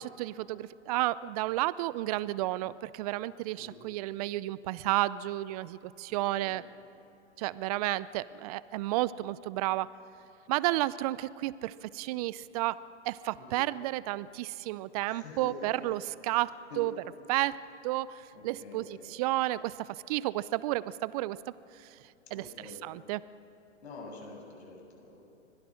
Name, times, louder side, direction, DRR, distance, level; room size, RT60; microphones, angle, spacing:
voice 1, 0.0-6.6 7.4-9.9 10.5-12.8 13.0-16.5 16.8-16.9 17.3-21.5 21.8-21.9 22.3-23.2, right 16 dB, 35° right, 18 dB, 0.6 m, -32 dB
voice 2, 6.1-6.6 13.4-13.6 15.1-15.9 16.3-16.4 16.7-16.8 18.3-19.1 22.3-22.8 23.8-25.2, left 2 dB, 65° left, 0 dB, 7.9 m, -47 dB
25.5 x 20.0 x 6.4 m, 2.6 s
hypercardioid pair, 125°, 36 cm